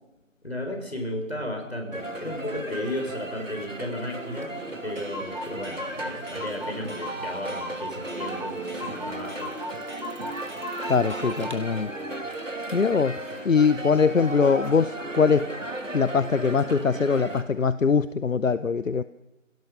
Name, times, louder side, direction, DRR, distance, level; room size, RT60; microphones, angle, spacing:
voice 1, 0.4-9.5, left 1 dB, 55° left, 3 dB, 4.6 m, -34 dB
sound 1, 1.9-17.4, right 1 dB, 75° right, 2.4 m, -35 dB
Clock, 4.4-4.5 4.7-4.8 5.0-11.6, equal, 35° right, 2.1 m, -38 dB
voice 2, 10.9-11.9 12.7-13.2 13.4-15.5 15.9-19.0, left 5 dB, 80° left, 15 dB, 0.7 m, -22 dB
26.0 x 17.0 x 6.5 m, 1.0 s
figure-of-eight pair, 175°, 38 cm